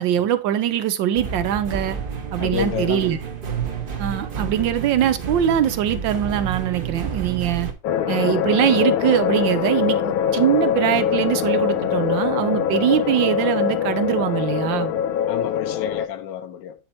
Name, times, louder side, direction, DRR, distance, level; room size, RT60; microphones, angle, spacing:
voice 1, 0.0-2.0 2.3-3.2 4.0-7.7 8.1-14.9, right 10 dB, 75° right, 1.4 m, -22 dB
sound 1, 1.1-7.7, right 6 dB, 40° right, 0.9 m, -30 dB
voice 2, 2.4-3.1 15.3-16.7, left 9 dB, 70° left, 1.3 m, -29 dB
sound 2, 7.8-16.1, left 9 dB, 90° left, 1.5 m, -23 dB
8.7 x 4.3 x 4.1 m
omnidirectional pair, 2.1 m